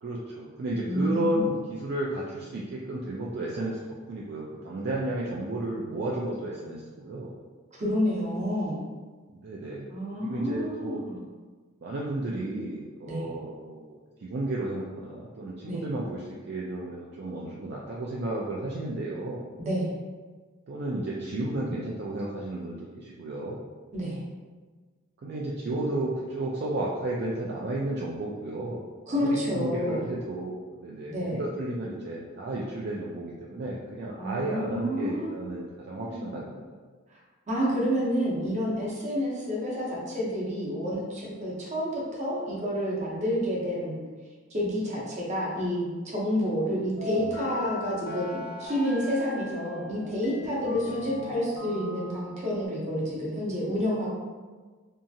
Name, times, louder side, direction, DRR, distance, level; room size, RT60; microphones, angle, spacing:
voice 1, 0.0-7.3 9.3-9.9 10.2-11.0 11.8-19.5 20.7-23.6 25.2-36.8 50.7-50.8, right 1 dB, 55° right, -4 dB, 0.3 m, -33 dB
voice 2, 0.8-1.4 7.8-8.8 9.9-11.2 13.1-13.3 15.7-15.8 19.6-19.9 23.9-24.2 29.1-30.0 31.1-31.4 34.2-35.4 36.0-36.4 37.5-44.0 44.5-54.1, equal, 35° right, -5 dB, 0.7 m, -29 dB
sound 1, 47.0-52.7, left 1 dB, 55° left, 0.5 m, -38 dB
2.8 x 2.4 x 2.6 m, 1.4 s
head